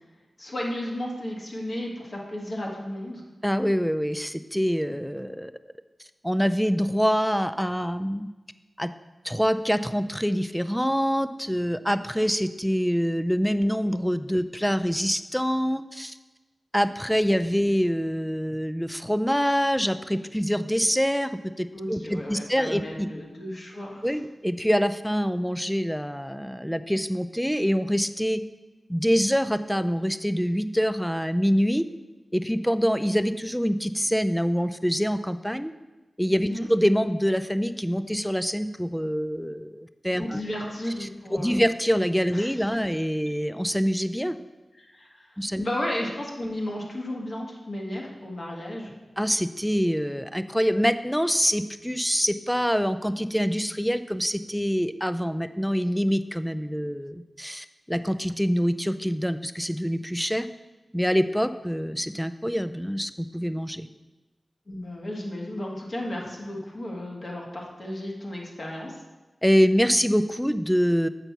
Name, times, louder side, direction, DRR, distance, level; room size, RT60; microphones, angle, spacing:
voice 1, 0.4-3.2 21.7-24.1 36.4-36.7 40.2-41.6 42.3-42.5 44.8-48.9 64.7-69.0, left 1 dB, 50° left, -2 dB, 1.7 m, -34 dB
voice 2, 3.4-5.5 6.2-8.3 8.8-8.9 9.2-16.2 16.7-23.1 24.0-28.4 28.9-31.9 32.3-35.7 36.2-40.4 41.0-44.4 45.4-45.7 49.2-60.5 60.9-63.9 69.4-71.1, equal, ahead, 12 dB, 0.4 m, -25 dB
6.7 x 4.5 x 5.7 m, 1.2 s
cardioid pair, 45°, 0 cm